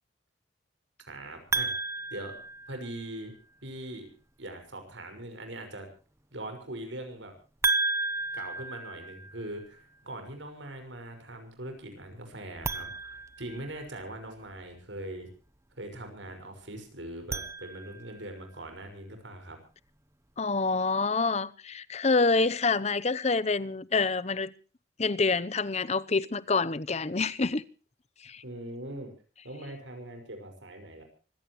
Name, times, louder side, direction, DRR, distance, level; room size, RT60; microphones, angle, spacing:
voice 1, 1.0-2.4 2.7-3.3 3.6-4.1 4.4-5.9 6.3-7.3 8.3-15.3 15.8-19.6 28.4-29.1 29.4-31.0, right 1 dB, 85° right, 6.0 m, -41 dB
sound 1, 1.5-3.2 7.6-9.7 12.5-14.2 17.1-18.3, right 3 dB, 15° right, 0.9 m, -33 dB
voice 2, 20.4-24.5 25.0-27.6 28.2-28.4, left 3 dB, 35° left, 0.8 m, -27 dB
25.5 x 16.5 x 3.1 m
head